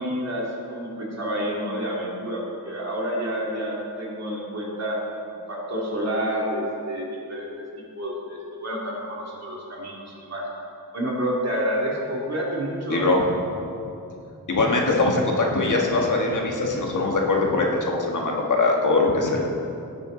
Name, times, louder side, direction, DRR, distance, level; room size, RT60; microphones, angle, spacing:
voice 1, 0.0-5.0 5.5-7.7 8.0-10.4 10.9-13.1, equal, 45° right, -4 dB, 2.6 m, -29 dB
voice 2, 12.9-13.2 14.5-19.4, left 3 dB, 55° left, 0 dB, 1.6 m, -22 dB
16.5 x 9.6 x 3.9 m, 2.7 s
wide cardioid pair, 145°, 37 cm